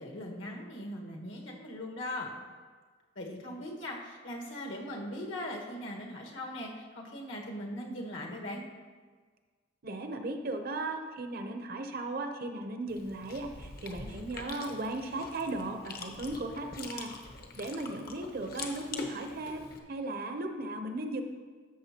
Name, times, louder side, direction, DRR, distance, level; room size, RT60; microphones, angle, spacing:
voice 1, 0.0-2.3 3.1-8.6, left 1 dB, 75° left, -1 dB, 1.5 m, -40 dB
voice 2, 9.8-17.1 17.6-21.2, right 2 dB, 50° right, 6 dB, 0.7 m, -36 dB
Chewing mastication, 12.9-19.8, left 3 dB, 50° left, 0.9 m, -44 dB
13.5 x 6.7 x 2.9 m, 1.5 s
head